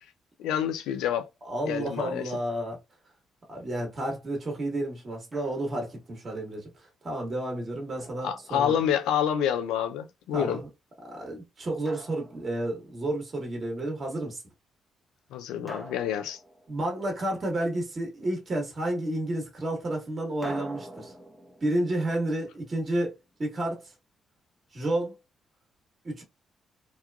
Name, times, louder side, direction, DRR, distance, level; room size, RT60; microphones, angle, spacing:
voice 1, 0.4-1.3 1.7-2.3 8.2-10.6 15.3-16.4, left 9 dB, 80° left, 0.3 m, -28 dB
voice 2, 1.4-2.8 3.5-6.7 7.0-8.7 10.3-10.7 11.1-14.4 16.7-21.1 21.6-23.1 23.4-23.9 24.7-25.1 26.0-26.2, right 1 dB, 45° right, 1.2 m, -31 dB
Drum, 5.3-6.0 8.0-9.1 11.9-13.0 15.7-17.3 20.4-23.4, right 1 dB, 10° right, 0.7 m, -45 dB
3.0 x 2.2 x 2.2 m
hypercardioid pair, 45°, 0 cm